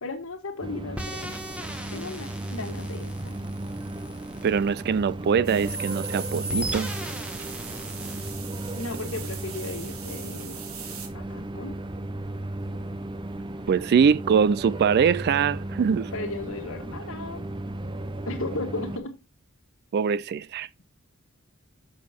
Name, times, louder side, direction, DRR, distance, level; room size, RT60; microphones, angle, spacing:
voice 1, 0.0-1.4 1.9-3.4 8.7-10.6 11.1-11.8 16.1-17.5 18.2-19.2, left 2 dB, 65° left, 1.6 m, -35 dB
sound 1, 0.6-19.0, right 1 dB, 20° right, 0.7 m, -35 dB
sound 2, 1.0-5.3 5.7-8.4, right 1 dB, 5° right, 1.2 m, -37 dB
voice 2, 4.4-6.9 13.7-16.1 19.9-20.7, right 6 dB, 50° right, 0.3 m, -23 dB
sound 3, 5.4-11.1, right 7 dB, 75° right, 1.7 m, -41 dB
7.3 x 6.3 x 4.3 m
head